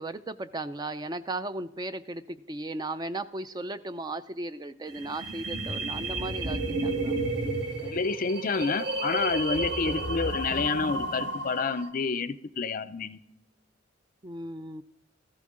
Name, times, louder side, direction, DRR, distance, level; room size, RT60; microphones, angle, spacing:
voice 1, 0.0-7.2 9.8-10.0 14.2-14.8, right 2 dB, 20° right, 13 dB, 0.4 m, -36 dB
sound 1, 4.9-11.9, right 2 dB, 60° right, 1.8 m, -32 dB
voice 2, 7.8-13.2, left 4 dB, 45° left, 15 dB, 0.5 m, -29 dB
14.5 x 13.0 x 3.7 m, 0.80 s
head